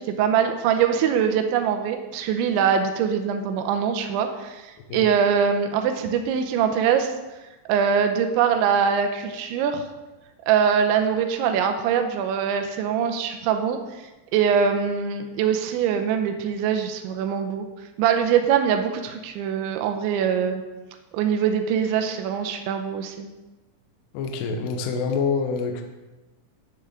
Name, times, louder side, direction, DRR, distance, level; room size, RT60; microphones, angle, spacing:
voice 1, 0.0-7.1 7.7-9.8 10.5-13.8 14.3-17.7 18.0-20.6 21.1-23.3, right 7 dB, 80° right, 5 dB, 2.8 m, -23 dB
voice 2, 24.1-25.8, left 5 dB, 75° left, 4 dB, 2.5 m, -26 dB
11.0 x 9.7 x 3.7 m, 1.1 s
omnidirectional pair, 6.0 m